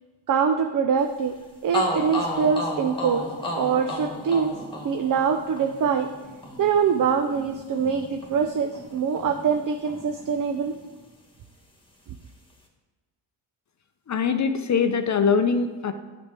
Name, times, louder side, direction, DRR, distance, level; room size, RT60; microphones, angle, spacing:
voice 1, 0.3-1.4 1.6-3.3 3.6-4.6 4.8-6.1 6.6-10.7, right 6 dB, 40° right, 7 dB, 0.6 m, -24 dB
sound 1, 1.3-1.4 1.7-9.6 9.9-11.0, left 1 dB, 10° left, 1.8 m, -33 dB
voice 2, 14.1-15.9, left 5 dB, 35° left, 9 dB, 0.6 m, -22 dB
8.6 x 7.2 x 4.5 m, 1.3 s
cardioid pair, 80°, 50 cm